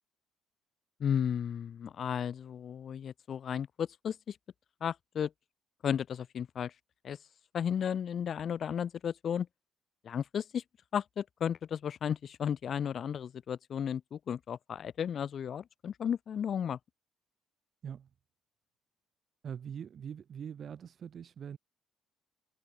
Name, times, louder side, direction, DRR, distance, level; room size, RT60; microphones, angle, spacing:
voice 1, 1.0-4.4 4.8-5.3 5.8-6.7 7.0-7.2 7.5-9.5 10.0-10.6 10.9-16.8, left 8 dB, 50° left, 1.6 m, -34 dB
voice 2, 19.4-21.6, right 8 dB, 50° right, 6.7 m, -43 dB
cardioid pair, 90°, 0 cm